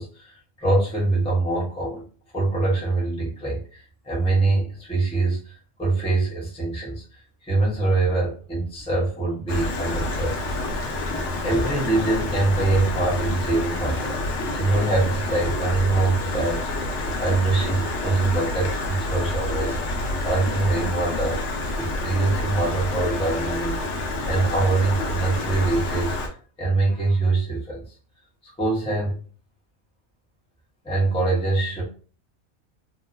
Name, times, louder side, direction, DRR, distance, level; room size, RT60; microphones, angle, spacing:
voice 1, 0.0-2.0 2.3-10.8 11.4-14.2 14.5-16.7 17.2-21.4 21.8-23.8 24.2-26.1 26.6-27.8 28.4-29.2 30.8-31.8, right 2 dB, 5° left, -5 dB, 0.7 m, -24 dB
Stream, 9.5-26.3, left 2 dB, 65° left, 0.8 m, -28 dB
2.9 x 2.0 x 2.5 m, 0.40 s
omnidirectional pair, 1.4 m